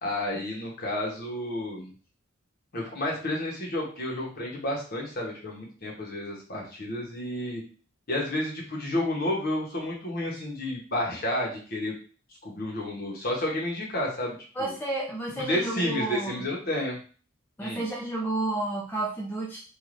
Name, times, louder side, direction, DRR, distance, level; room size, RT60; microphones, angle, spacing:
voice 1, 0.0-1.9 2.7-7.6 8.1-11.9 12.4-14.7 15.5-17.0 17.6-17.8, left 1 dB, 45° left, -2 dB, 1.0 m, -31 dB
voice 2, 14.5-16.4 17.6-19.6, right 2 dB, 10° left, -4 dB, 0.4 m, -31 dB
3.2 x 2.5 x 2.5 m, 0.40 s
head